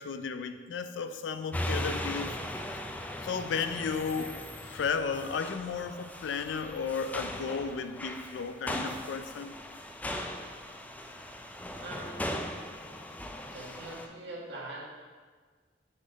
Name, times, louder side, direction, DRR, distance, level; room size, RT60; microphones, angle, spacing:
voice 1, 0.0-2.4 2.7-2.9 3.2-9.5, left 5 dB, 85° left, 9 dB, 0.4 m, -34 dB
sound 1, 1.5-14.1, left 1 dB, 10° left, 0.3 m, -38 dB
voice 2, 11.8-12.5 13.4-14.8, right 2 dB, 70° right, -5 dB, 1.6 m, -43 dB
6.4 x 3.8 x 4.1 m, 1.5 s
head